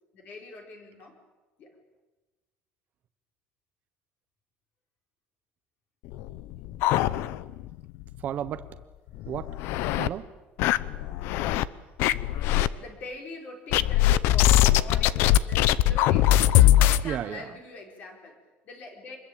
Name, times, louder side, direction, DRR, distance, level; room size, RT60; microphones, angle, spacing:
voice 1, 0.1-1.2 1.6-1.7 12.5-19.2, left 2 dB, 40° left, 5.1 m, -43 dB
sound 1, 6.1-7.7 8.0-8.1 8.5-8.6 9.2-10.1 10.6-11.7 12.0-12.7 13.7-17.0, left 13 dB, 65° left, 0.9 m, -21 dB
voice 2, 8.2-8.8 9.3-10.3 17.0-17.5, right 10 dB, 40° right, 1.0 m, -34 dB
26.0 x 21.5 x 8.8 m
cardioid pair, 180°, 4 cm